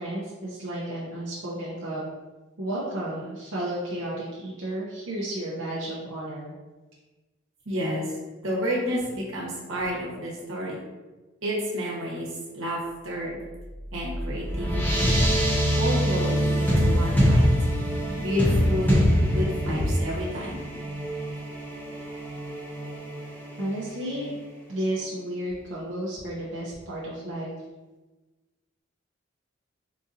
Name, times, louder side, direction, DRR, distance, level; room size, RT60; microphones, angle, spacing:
voice 1, 0.0-2.1 2.6-6.5 23.6-24.4 24.7-27.5, right 1 dB, 65° right, -7 dB, 0.6 m, -32 dB
voice 2, 7.7-8.1 8.4-10.8 11.4-12.3 12.5-13.4 13.9-15.3 15.7-17.4 18.2-18.9 19.2-20.6, equal, 85° right, -4 dB, 1.0 m, -30 dB
sound 1, 13.6-24.3, equal, 10° left, 0.6 m, -25 dB
3.8 x 2.6 x 2.5 m, 1.2 s
head